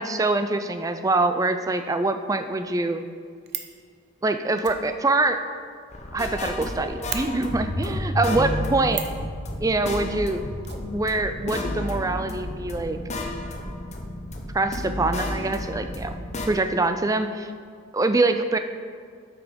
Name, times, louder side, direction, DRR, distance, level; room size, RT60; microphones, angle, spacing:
voice 1, 0.0-3.0 4.2-5.5 6.1-9.0 9.6-10.4 10.9-13.0 14.5-16.1 16.5-17.5 17.9-18.6, right 2 dB, 15° right, 8 dB, 0.3 m, -24 dB
Fire, 3.0-3.8 4.6-6.3 6.6-6.7 7.1-7.2 8.9-9.2 10.6-11.5 11.8-11.9 12.1-12.2, right 10 dB, 50° right, 0.6 m, -36 dB
sound 1, 5.9-16.5, left 1 dB, 30° left, 0.8 m, -31 dB
8.1 x 6.0 x 5.1 m, 2.2 s
head